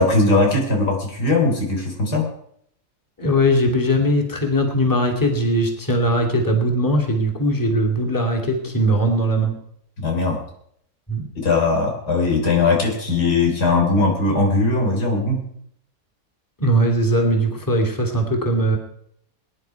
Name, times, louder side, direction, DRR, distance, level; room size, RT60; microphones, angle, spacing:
voice 1, 0.0-2.3 10.0-10.4 11.4-15.5, left 3 dB, 90° left, 1 dB, 4.3 m, -19 dB
voice 2, 3.2-9.6 11.1-11.3 16.6-18.8, equal, 10° left, 1 dB, 2.4 m, -20 dB
21.5 x 10.5 x 4.6 m, 0.69 s
omnidirectional pair, 1.7 m